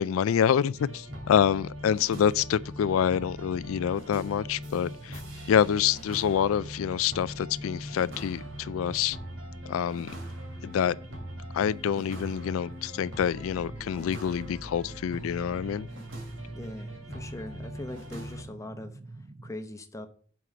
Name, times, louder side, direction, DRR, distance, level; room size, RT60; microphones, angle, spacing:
voice 1, 0.0-5.2 5.5-9.2 9.7-10.1 10.6-11.0 11.5-15.9, left 8 dB, 90° left, 0.3 m, -26 dB
sound 1, 0.7-18.4, equal, 70° right, 2.6 m, -41 dB
sound 2, 2.1-19.5, right 2 dB, 35° right, 0.5 m, -48 dB
voice 2, 16.5-20.1, left 1 dB, 15° left, 0.9 m, -41 dB
7.6 x 4.7 x 6.8 m
head